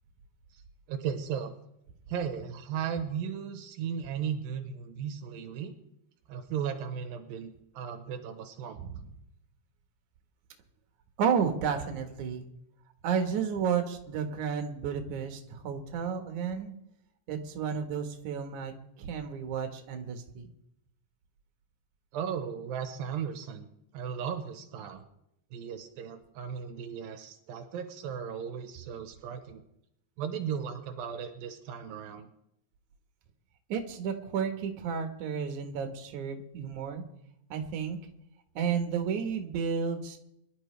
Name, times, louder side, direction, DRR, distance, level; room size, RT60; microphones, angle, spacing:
voice 1, 0.9-1.5 2.1-5.8 6.3-8.8 22.1-23.7 23.9-25.0 25.5-29.6 30.2-32.3, right 7 dB, 85° right, 7 dB, 2.7 m, -36 dB
voice 2, 11.2-12.5 13.0-16.7 17.3-18.7 19.0-20.5 33.7-37.0 37.5-38.0 38.6-40.2, right 7 dB, 65° right, 5 dB, 2.7 m, -32 dB
23.0 x 12.0 x 3.3 m, 0.80 s
omnidirectional pair, 4.0 m